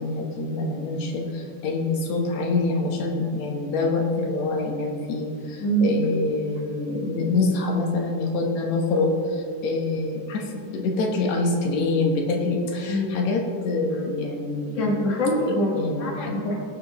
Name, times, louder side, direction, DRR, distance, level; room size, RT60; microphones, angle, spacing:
voice 1, 0.0-14.9 15.4-16.3, left 3 dB, 65° left, 0 dB, 1.9 m, -25 dB
voice 2, 5.6-6.0 12.9-13.1 14.7-15.7 16.0-16.6, right 1 dB, 90° left, -2 dB, 0.6 m, -24 dB
19.0 x 6.6 x 3.1 m, 2.3 s
omnidirectional pair, 4.5 m